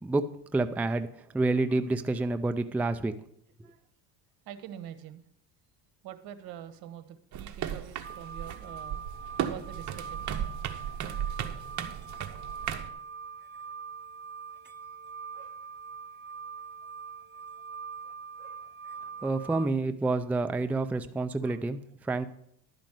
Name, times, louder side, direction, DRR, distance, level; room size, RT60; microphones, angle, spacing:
voice 1, 0.0-3.1 19.2-22.3, right 2 dB, 5° right, 9 dB, 0.4 m, -29 dB
voice 2, 4.4-5.2 6.0-9.0 9.5-10.3 15.3-15.6 17.7-18.7 19.2-19.6 20.8-21.0 21.4-21.6, right 10 dB, 70° right, 11 dB, 1.2 m, -46 dB
sound 1, 7.3-12.9, right 9 dB, 50° right, 1.1 m, -35 dB
sound 2, 8.0-19.7, right 6 dB, 30° right, 0.8 m, -43 dB
11.5 x 5.2 x 7.5 m, 0.71 s
cardioid pair, 115°, 37 cm